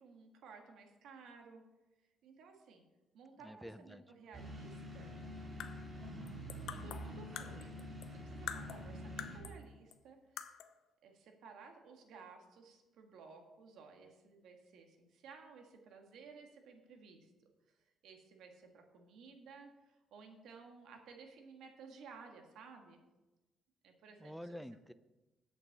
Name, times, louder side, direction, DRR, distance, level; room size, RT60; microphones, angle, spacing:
voice 1, 0.0-1.6 2.2-2.8 3.1-5.2 6.7-10.5 11.0-17.3 17.8-23.0 23.8-24.6, right 5 dB, 75° right, 3 dB, 1.8 m, -56 dB
voice 2, 3.4-4.0 24.2-24.9, equal, ahead, 13 dB, 0.5 m, -48 dB
sound 1, 4.3-9.4, equal, 25° right, 3.0 m, -47 dB
sound 2, 5.4-8.2 8.5-9.6 9.9-10.0 10.4-10.8, left 9 dB, 75° left, 0.7 m, -47 dB
8.2 x 6.6 x 7.4 m, 1.1 s
cardioid pair, 115°, 0 cm